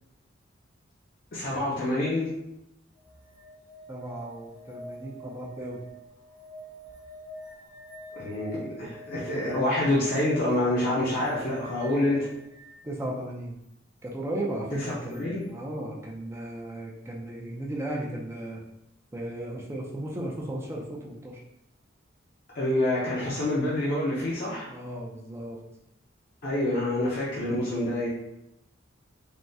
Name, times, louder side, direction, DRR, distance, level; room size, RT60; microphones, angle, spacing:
voice 1, 1.3-2.3 8.1-12.3 14.7-15.5 22.5-24.7 26.4-28.1, left 1 dB, 50° left, -7 dB, 0.6 m, -27 dB
sound 1, 3.0-12.8 15.1-15.2, equal, 75° left, 1.1 m, -45 dB
voice 2, 3.9-5.8 11.3-11.6 12.8-13.6 14.0-18.6 19.1-21.4 24.7-25.6, right 1 dB, 15° right, -3 dB, 0.4 m, -35 dB
3.5 x 2.0 x 2.6 m, 0.85 s
head